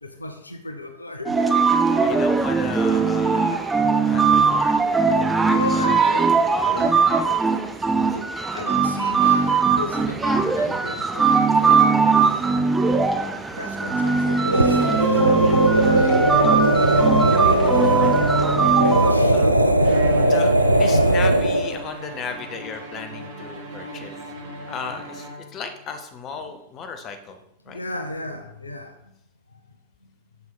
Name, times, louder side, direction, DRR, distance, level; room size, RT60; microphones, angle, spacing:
voice 1, 0.0-1.8 3.4-3.7 5.5-7.0 8.1-12.8 13.5-17.2 19.0-19.9 27.7-29.1 29.5-29.6, left 2 dB, 80° left, 6 dB, 0.5 m, -36 dB
sound 1, 1.3-19.1, right 5 dB, 10° right, 0.5 m, -20 dB
voice 2, 2.0-3.7 4.0-4.8 19.3-19.5 19.9-20.0 20.3-24.2 24.7-27.4 27.7-27.8, left 5 dB, 30° left, 7 dB, 0.6 m, -35 dB
sound 2, 14.4-21.8, right 1 dB, 85° right, 0.3 m, -18 dB
Bowed string instrument, 19.8-25.8, left 1 dB, 50° right, 0.9 m, -36 dB
6.8 x 6.3 x 2.2 m, 0.77 s
figure-of-eight pair, 90°, 0 cm